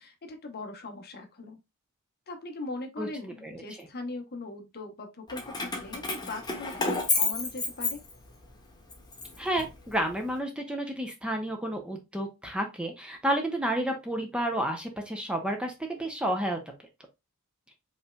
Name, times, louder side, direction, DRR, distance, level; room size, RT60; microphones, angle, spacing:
voice 1, 0.0-1.6 2.3-8.0, left 2 dB, 45° left, 0.9 m, -40 dB
Keys jangling, 5.3-8.5 8.9-10.2, left 3 dB, 20° left, 1.1 m, -31 dB
voice 2, 9.4-16.6, right 1 dB, 5° right, 0.7 m, -31 dB
5.3 x 3.2 x 2.3 m
head